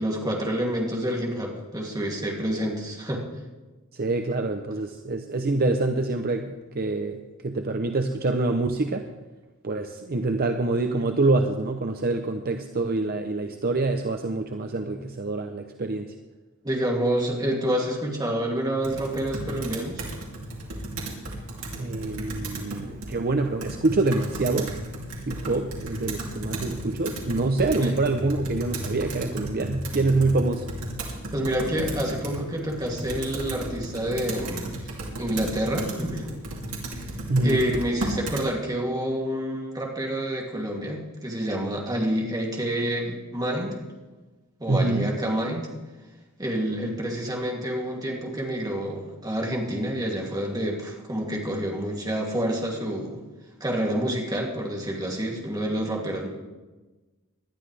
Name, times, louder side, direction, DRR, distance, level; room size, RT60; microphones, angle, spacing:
voice 1, 0.0-3.3 16.6-20.1 27.8-28.0 31.3-34.8 35.2-36.3 37.4-43.8 44.6-45.7 46.4-53.2 53.6-56.3, right 1 dB, 20° right, -1 dB, 2.7 m, -28 dB
voice 2, 3.9-9.1 9.6-16.1 21.7-24.7 25.3-30.7 37.3-37.6 44.7-45.1, right 2 dB, 45° right, 6 dB, 0.8 m, -26 dB
Computer keyboard, 18.8-38.5, right 1 dB, 85° right, 3.0 m, -35 dB
19.5 x 12.0 x 3.4 m, 1.2 s
head